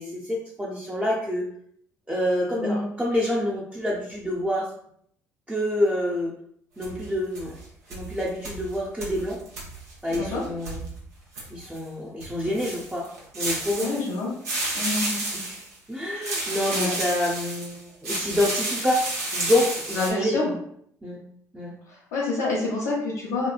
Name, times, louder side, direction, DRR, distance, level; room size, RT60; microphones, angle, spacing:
voice 1, 0.0-1.5 2.1-4.7 5.5-6.3 6.8-7.6 7.9-9.4 10.0-10.8 11.5-13.1 13.3-13.9 15.3-19.0 19.3-20.4 21.0-21.2 21.5-21.8, left 1 dB, 15° right, -3 dB, 0.6 m, -27 dB
sound 1, 6.8-7.6 7.9-11.8 12.2-14.2 14.4-15.7 16.2-17.8 18.0-20.1, right 2 dB, 80° right, 0.7 m, -31 dB
voice 2, 10.1-10.4 13.7-14.3 14.7-15.2 16.7-17.0 19.9-20.6 21.9-23.5, left 3 dB, 80° left, -7 dB, 0.7 m, -27 dB
3.0 x 2.2 x 2.3 m, 0.66 s
hypercardioid pair, 50°, 9 cm